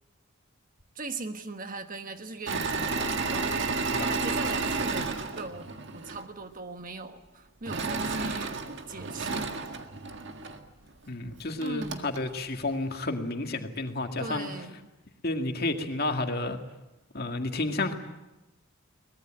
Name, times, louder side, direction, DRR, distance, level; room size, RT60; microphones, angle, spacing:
voice 1, 0.9-3.7 4.1-5.7 5.9-8.6 8.9-9.5 11.6-12.1 14.2-14.9, right 3 dB, 40° right, 7 dB, 1.3 m, -40 dB
Engine / Mechanisms, 2.5-6.2 7.7-10.6 11.3-11.4 11.6-12.2, right 4 dB, 55° right, 1.8 m, -31 dB
voice 2, 11.1-14.5 15.2-16.6 17.1-17.9, left 2 dB, 45° left, 4 dB, 2.1 m, -31 dB
23.5 x 20.0 x 8.9 m, 1.0 s
head